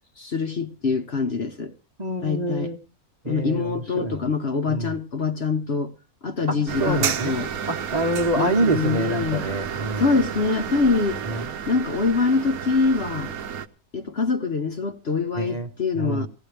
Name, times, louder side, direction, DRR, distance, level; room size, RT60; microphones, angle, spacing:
voice 1, 0.2-1.7 2.2-2.7 3.3-5.9 6.2-7.5 8.4-9.4 10.0-11.2 11.7-13.3 13.9-16.3, left 4 dB, 45° left, 1.0 m, -24 dB
voice 2, 2.0-2.8 3.2-4.3 4.7-4.9 6.5-7.4 7.7-10.2 11.2-11.5 15.3-15.7 15.9-16.3, right 2 dB, 30° right, 0.9 m, -26 dB
sound 1, 6.7-13.7, right 8 dB, 70° right, 1.3 m, -31 dB
18.5 x 16.5 x 3.3 m
omnidirectional pair, 1.7 m